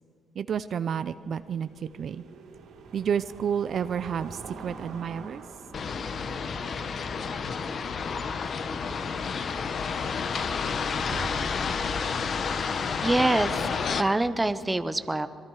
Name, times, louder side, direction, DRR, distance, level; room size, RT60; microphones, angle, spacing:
voice 1, 0.4-2.2 2.9-5.4, right 8 dB, 60° right, 13 dB, 0.5 m, -30 dB
sound 1, 1.1-14.0, right 4 dB, 75° right, 2.9 m, -49 dB
sound 2, 5.7-14.0, left 5 dB, 50° left, 1.1 m, -30 dB
voice 2, 13.0-15.3, right 2 dB, 15° right, 11 dB, 0.9 m, -25 dB
26.0 x 21.5 x 4.9 m, 2.5 s
cardioid pair, 90°, 0 cm